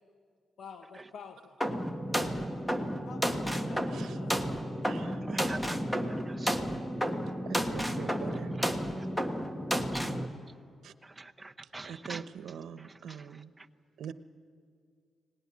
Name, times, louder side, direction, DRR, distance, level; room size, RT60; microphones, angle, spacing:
voice 1, 0.6-1.6 2.1-2.6 3.1-4.3, left 5 dB, 70° left, 5 dB, 1.3 m, -47 dB
sound 1, 1.6-10.3, equal, 5° left, 1.5 m, -32 dB
voice 2, 3.8-4.2 4.8-5.6 7.4-8.5 10.8-10.9 11.9-13.5 14.0-14.1, right 8 dB, 85° right, 11 dB, 1.0 m, -43 dB
voice 3, 5.2-5.8 6.1-6.6 7.7-8.2 8.6-8.7 9.0-9.1 11.0-12.3 12.8-13.7, right 2 dB, 15° right, 5 dB, 1.0 m, -46 dB
24.0 x 19.5 x 10.0 m, 2.2 s
cardioid pair, 115°, 0 cm